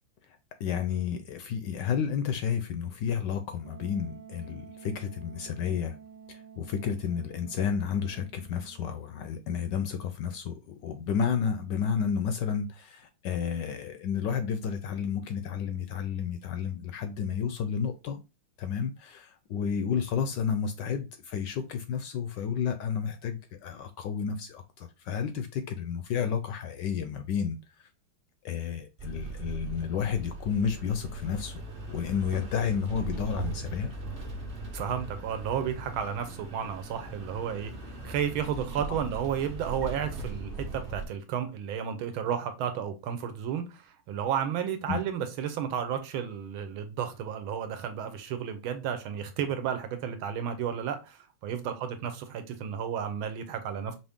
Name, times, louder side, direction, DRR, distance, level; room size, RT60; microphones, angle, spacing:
voice 1, 0.6-6.0 6.6-18.2 18.6-27.6 28.4-31.5 31.9-33.9 44.9-45.0, left 7 dB, 75° left, 1.0 m, -31 dB
Wind instrument woodwind instrument, 3.6-9.2, right 7 dB, 60° right, 0.9 m, -50 dB
sound 1, 29.0-41.0, right 3 dB, 35° right, 0.9 m, -39 dB
voice 2, 34.7-37.7 38.0-43.8 44.1-54.0, right 8 dB, 80° right, 1.5 m, -32 dB
5.3 x 2.7 x 3.5 m
omnidirectional pair, 2.3 m